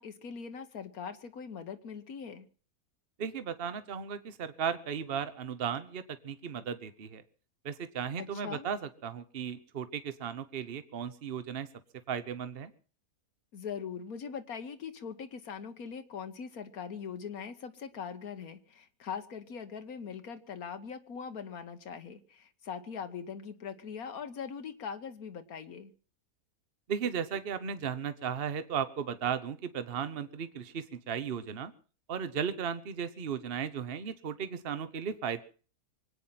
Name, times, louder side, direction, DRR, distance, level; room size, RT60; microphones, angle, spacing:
voice 1, 0.0-2.5 8.2-8.7 13.5-25.9, left 6 dB, 75° left, 9 dB, 1.5 m, -41 dB
voice 2, 3.2-7.2 7.6-11.7 12.1-12.7 26.9-31.7 32.1-35.4, right 7 dB, 45° right, 12 dB, 1.1 m, -35 dB
24.0 x 9.2 x 5.8 m, 0.40 s
omnidirectional pair, 1.5 m